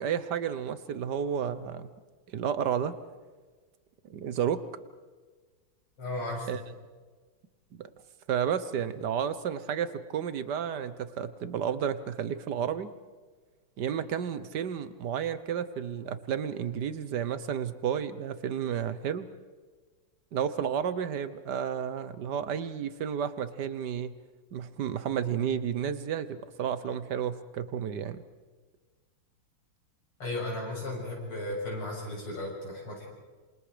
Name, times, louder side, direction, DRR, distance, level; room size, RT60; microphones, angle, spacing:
voice 1, 0.0-1.9 2.3-2.9 4.1-4.6 6.5-6.6 7.8-7.9 8.3-12.9 13.8-19.3 20.3-24.1 24.5-28.2, right 8 dB, 60° right, 13 dB, 1.4 m, -31 dB
voice 2, 6.0-6.5 30.2-33.1, left 2 dB, 85° left, -3 dB, 8.2 m, -35 dB
27.5 x 27.0 x 5.1 m, 1.4 s
omnidirectional pair, 2.4 m